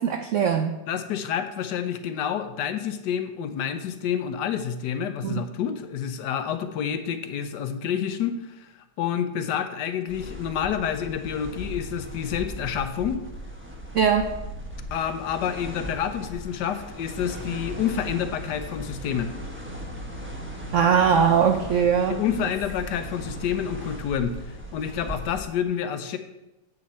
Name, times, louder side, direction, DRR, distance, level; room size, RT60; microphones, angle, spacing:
voice 1, 0.0-0.8 5.2-5.4 13.9-14.4 20.7-22.2, right 7 dB, 85° right, 6 dB, 0.6 m, -21 dB
voice 2, 0.9-13.2 14.9-19.3 22.2-26.2, left 8 dB, 70° left, 9 dB, 1.2 m, -28 dB
sound 1, 10.1-25.5, equal, 10° right, 0.8 m, -38 dB
9.4 x 7.3 x 4.2 m, 0.97 s
omnidirectional pair, 2.0 m